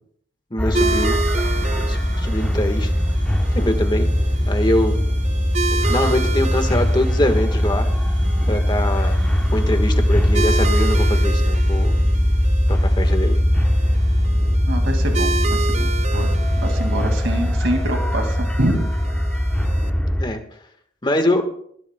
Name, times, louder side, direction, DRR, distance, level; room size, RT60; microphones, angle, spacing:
voice 1, 0.5-1.2 1.8-2.9 3.5-4.1 4.5-5.0 5.7-7.9 8.5-11.9 12.7-13.4 20.2-20.4 21.0-21.4, left 1 dB, 25° left, 6 dB, 1.4 m, -23 dB
sound 1, 0.6-20.3, equal, 5° left, 0.9 m, -20 dB
sound 2, 0.7-19.9, right 4 dB, 35° right, 0.5 m, -31 dB
sound 3, 0.8-20.1, right 1 dB, 50° right, 4.9 m, -42 dB
voice 2, 14.7-16.3 16.6-18.9, right 1 dB, 80° right, 4 dB, 2.1 m, -26 dB
19.5 x 14.5 x 2.2 m, 0.65 s
head